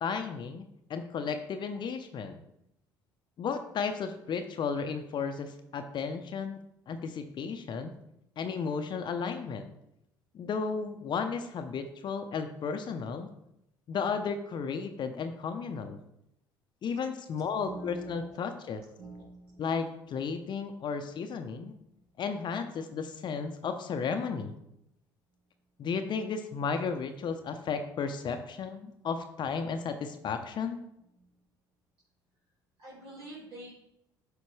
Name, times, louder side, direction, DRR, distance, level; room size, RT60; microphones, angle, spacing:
voice 1, 0.0-0.6 0.9-2.3 3.4-6.6 6.9-7.9 8.4-9.7 10.3-13.3 13.9-16.0 16.8-18.8 19.6-21.7 22.2-24.6 25.8-30.8, left 5 dB, 50° left, 7 dB, 0.7 m, -34 dB
voice 2, 17.6-18.4 19.0-19.8 29.0-29.1 31.2-31.3 32.8-33.7, right 2 dB, 60° right, -8 dB, 2.4 m, -45 dB
8.1 x 5.0 x 3.2 m, 0.80 s
hypercardioid pair, 65°, 10 cm